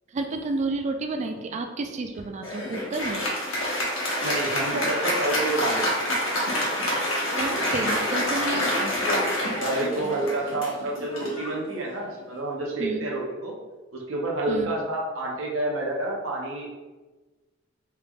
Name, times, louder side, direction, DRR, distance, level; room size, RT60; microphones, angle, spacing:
voice 1, 0.1-3.2 7.4-8.9 12.8-13.1 14.5-14.7, right 3 dB, 35° right, 5 dB, 0.3 m, -30 dB
Applause, 2.4-12.2, equal, 85° left, 1.1 m, -27 dB
voice 2, 4.2-6.1 9.6-13.5 13.9-16.7, right 2 dB, 80° right, -2 dB, 0.8 m, -29 dB
3.3 x 2.3 x 3.5 m, 1.2 s
head